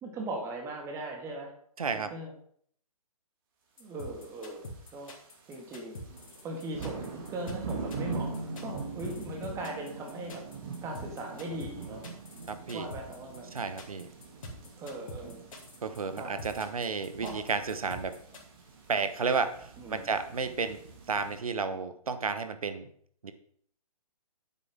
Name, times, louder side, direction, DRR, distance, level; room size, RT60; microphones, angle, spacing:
voice 1, 0.0-1.5 2.1-2.3 3.8-5.1 5.5-6.0 6.4-10.5 10.8-12.0 12.7-13.5 14.8-15.4 16.1-16.4 17.2-17.4 19.8-20.0, right 2 dB, 15° right, 0 dB, 2.1 m, -39 dB
voice 2, 1.8-2.1 12.5-12.9 13.5-14.1 15.8-18.1 18.9-20.8 21.1-22.9 23.2-23.3, right 5 dB, 65° right, 10 dB, 1.2 m, -32 dB
sound 1, 3.8-18.4, left 1 dB, 55° left, 2.8 m, -44 dB
sound 2, 4.2-4.6 5.0-5.2 5.6-21.4, right 4 dB, 35° right, 2.7 m, -42 dB
9.6 x 8.2 x 3.7 m, 0.62 s
figure-of-eight pair, 130°, 20 cm